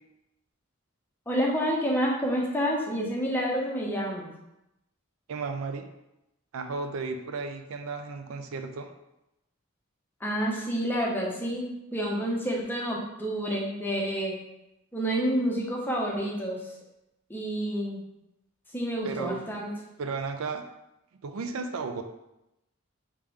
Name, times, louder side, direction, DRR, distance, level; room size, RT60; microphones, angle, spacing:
voice 1, 1.3-4.3 10.2-14.3 14.9-16.6 17.3-18.0 18.7-19.7, equal, 10° left, -3 dB, 0.7 m, -29 dB
voice 2, 5.3-5.9 6.5-8.9 19.0-19.4 20.0-20.6 21.2-22.0, right 4 dB, 80° right, 7 dB, 0.4 m, -34 dB
3.6 x 2.9 x 4.7 m, 0.90 s
head